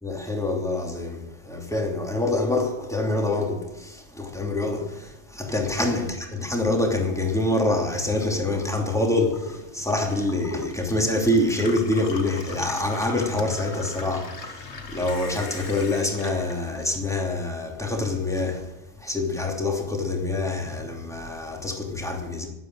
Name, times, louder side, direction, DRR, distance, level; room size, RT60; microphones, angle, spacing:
voice 1, 0.0-22.5, left 2 dB, ahead, 2.7 m, -26 dB
Gurgling / Water tap faucet / Sink (filling or washing), 7.9-17.5 17.8-18.7, left 3 dB, 60° left, 1.7 m, -41 dB
12.0 x 11.5 x 7.8 m
omnidirectional pair, 1.3 m